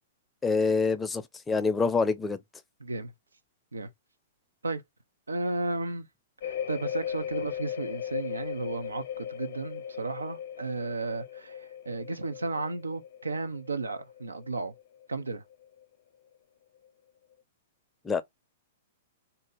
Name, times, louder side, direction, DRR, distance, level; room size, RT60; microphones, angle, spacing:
voice 1, 0.4-2.4 18.0-18.2, left 4 dB, 15° left, 0.6 m, -26 dB
voice 2, 2.8-3.1 3.7-3.9 4.6-4.8 5.3-6.1 6.4-14.7 15.1-15.4, right 3 dB, 85° right, 0.6 m, -34 dB
sound 1, 6.4-15.1 15.3-15.8, left 9 dB, 60° left, 0.7 m, -38 dB
2.7 x 2.6 x 3.8 m
figure-of-eight pair, 110°, 0 cm